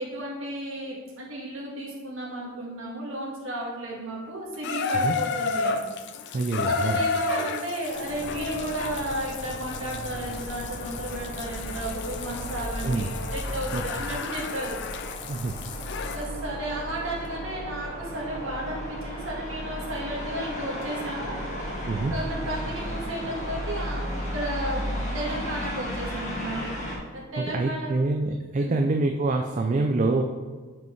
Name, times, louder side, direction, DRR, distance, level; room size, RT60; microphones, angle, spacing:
voice 1, 0.0-5.8 6.6-14.8 16.1-21.4 21.9-24.9 25.1-26.7 27.1-27.9 28.6-28.8, right 1 dB, 65° right, -4 dB, 1.7 m, -33 dB
Water tap faucet / Bathtub (filling or washing), 4.6-16.3 17.2-17.3, left 4 dB, 55° left, 0.5 m, -32 dB
voice 2, 6.3-7.0 12.8-13.1 13.7-13.8 15.3-15.6 21.9-22.1 27.4-30.2, right 3 dB, 35° right, 4 dB, 0.3 m, -26 dB
sound 1, 7.9-27.0, equal, 35° left, 1.4 m, -35 dB
5.5 x 5.4 x 4.5 m, 1.5 s
head